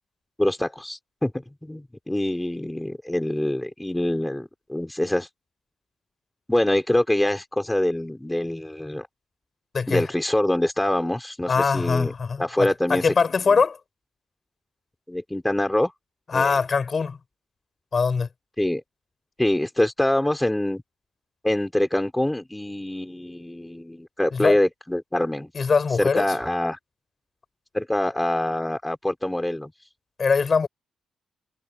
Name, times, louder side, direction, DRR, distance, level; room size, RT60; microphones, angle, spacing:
voice 1, 0.4-5.3 6.5-9.1 9.9-12.1 12.4-13.0 13.5-13.6 15.1-15.9 16.3-16.6 18.6-18.8 19.4-20.8 21.4-25.5 26.0-26.8 27.7-29.7, left 1 dB, 10° left, 3.9 m, -25 dB
voice 2, 11.5-13.8 16.3-17.2 17.9-18.3 24.3-24.6 25.6-26.3 30.2-30.7, left 5 dB, 40° left, 5.1 m, -22 dB
cardioid pair, 120°, 0 cm